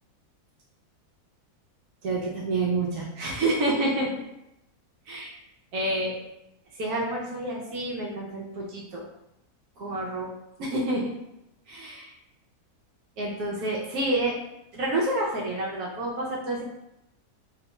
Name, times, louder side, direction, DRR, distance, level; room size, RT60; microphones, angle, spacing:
voice 1, 2.0-4.1 5.1-5.3 5.7-6.2 6.8-9.0 9.8-10.3 10.6-11.1 11.7-12.1 13.2-14.3 14.7-16.6, right 2 dB, 75° right, -4 dB, 1.1 m, -28 dB
3.9 x 2.2 x 2.9 m, 0.89 s
omnidirectional pair, 1.6 m